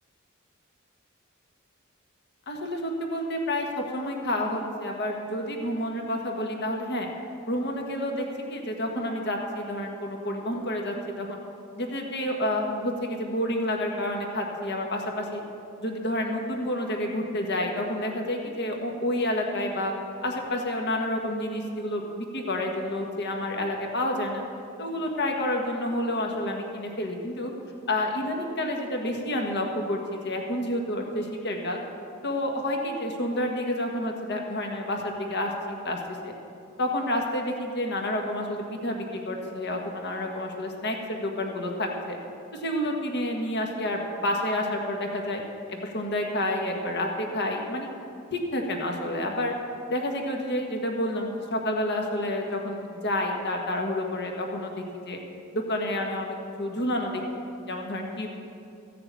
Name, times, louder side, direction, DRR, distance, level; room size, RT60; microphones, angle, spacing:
voice 1, 2.5-7.1 7.5-11.4 11.8-15.4 15.8-19.9 20.2-24.4 24.8-27.5 27.9-31.8 32.2-36.3 36.8-42.2 42.5-45.4 45.7-47.9 48.3-49.5 49.9-55.2 55.5-58.3, left 1 dB, 55° left, 2 dB, 1.5 m, -29 dB
14.5 x 6.8 x 8.4 m, 2.6 s
head